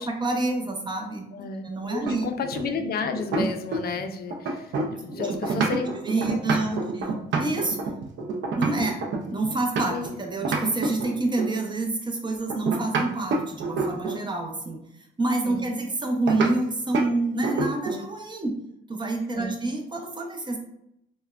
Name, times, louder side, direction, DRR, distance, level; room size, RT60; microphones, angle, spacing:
voice 1, 0.0-1.2 1.6-2.3 5.1-7.8 8.6-9.0 9.3-14.8 15.2-18.6 18.9-20.6, right 2 dB, 25° right, 2 dB, 0.6 m, -28 dB
voice 2, 1.3-1.6 1.9-6.9 8.7-8.9 9.9-10.1 15.4-15.8 19.3-19.6, left 5 dB, 50° left, 6 dB, 0.4 m, -32 dB
sound 1, 2.0-4.0 4.3-10.1 10.4-11.6 12.5-14.3 16.3-16.5 16.9-17.1 17.4-18.1, right 3 dB, 65° right, 0.5 m, -28 dB
3.3 x 2.1 x 2.3 m, 0.78 s
cardioid pair, 90°, 20 cm